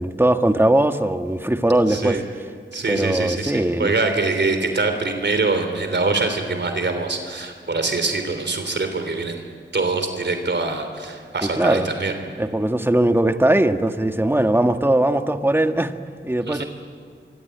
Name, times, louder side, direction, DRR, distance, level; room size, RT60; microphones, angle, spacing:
voice 1, 0.0-2.2 2.9-3.9 11.4-11.9 12.4-15.9 16.2-16.6, right 1 dB, 10° right, 7 dB, 1.5 m, -20 dB
voice 2, 1.9-2.2 2.7-9.5 9.7-12.1 16.5-16.7, right 3 dB, 65° right, 6 dB, 3.4 m, -24 dB
25.0 x 24.5 x 9.4 m, 2.1 s
wide cardioid pair, 80°, 19 cm